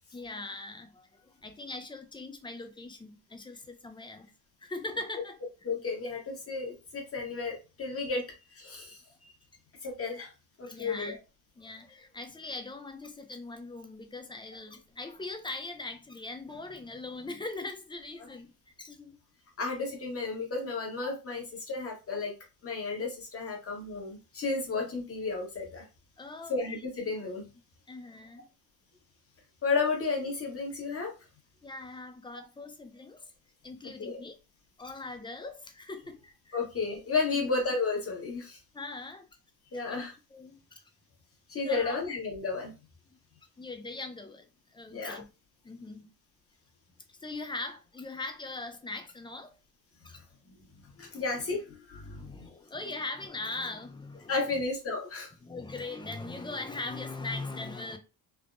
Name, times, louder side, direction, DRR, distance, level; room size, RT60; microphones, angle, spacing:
voice 1, 0.1-4.3 4.6-5.4 8.0-8.2 10.6-11.2 11.6-19.2 21.0-21.1 26.2-26.6 27.9-28.5 31.6-33.3 33.6-34.4 34.8-36.6 37.3-37.4 38.7-39.3 39.7-40.0 40.3-40.8 41.6-42.0 43.1-43.2 43.6-45.3 45.6-46.1 47.1-49.5 50.0-50.2 50.9-51.2 52.1-54.6 55.4-58.0, left 3 dB, 15° left, 0.3 m, -41 dB
voice 2, 5.6-8.2 8.6-9.0 9.8-10.3 10.6-11.1 19.6-22.3 22.6-25.8 26.5-27.4 29.6-31.1 34.0-34.2 36.5-38.6 39.7-40.1 41.5-42.7 44.9-45.2 51.0-52.5 54.3-55.3, left 4 dB, 35° left, 1.0 m, -32 dB
3.4 x 2.0 x 2.4 m
cardioid pair, 120°, 39 cm